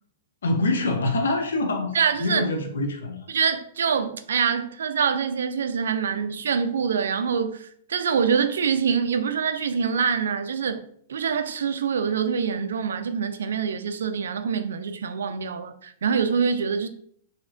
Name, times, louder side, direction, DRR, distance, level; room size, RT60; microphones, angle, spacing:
voice 1, 0.4-3.3, left 2 dB, 85° left, 0.7 m, -25 dB
voice 2, 1.9-2.4 3.3-10.8 11.1-16.9, right 6 dB, 85° right, 0.3 m, -25 dB
3.2 x 2.8 x 2.5 m
hypercardioid pair, 125°, 0 cm